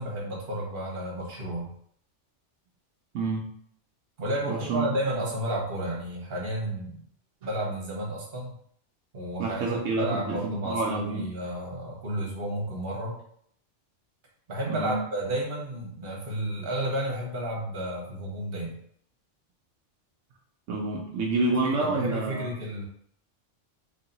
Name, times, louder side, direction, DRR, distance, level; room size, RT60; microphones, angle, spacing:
voice 1, 0.0-1.7 4.2-7.0 7.4-8.5 9.1-13.2 14.5-18.8 21.4-22.8, right 1 dB, 50° right, -2 dB, 1.3 m, -32 dB
voice 2, 3.1-3.5 4.5-4.9 9.4-11.2 14.7-15.0 20.7-22.5, right 3 dB, 80° right, -2 dB, 1.0 m, -28 dB
3.0 x 2.8 x 3.9 m, 0.65 s
omnidirectional pair, 1.3 m